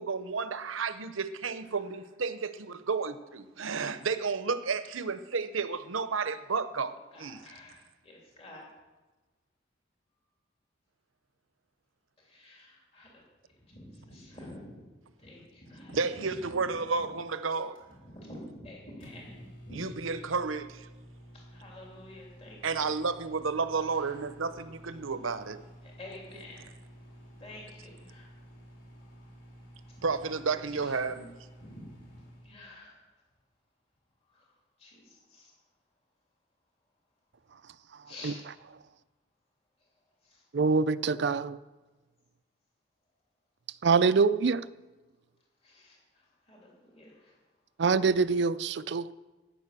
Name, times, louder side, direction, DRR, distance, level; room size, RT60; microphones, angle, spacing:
voice 1, 0.0-7.5 15.9-17.8 19.7-20.9 22.6-25.6 26.3-26.4 30.0-31.3, right 4 dB, 90° right, 0.8 m, -32 dB
voice 2, 7.1-8.6 12.2-13.1 13.6-14.9 15.2-16.0 18.0-19.8 21.5-22.6 25.8-26.6 27.4-28.3 29.0-29.1 30.7-30.9 31.6-33.0 34.3-34.4 34.8-35.5 38.1-38.4 40.2-40.4 45.6-46.7 46.9-47.3, left 1 dB, 30° left, 3.2 m, -49 dB
Microwave oven, 17.4-32.5, equal, 75° left, 3.7 m, -52 dB
voice 3, 40.5-41.6 43.8-44.6 47.8-49.1, right 4 dB, 60° right, 0.4 m, -25 dB
14.0 x 9.4 x 6.8 m
head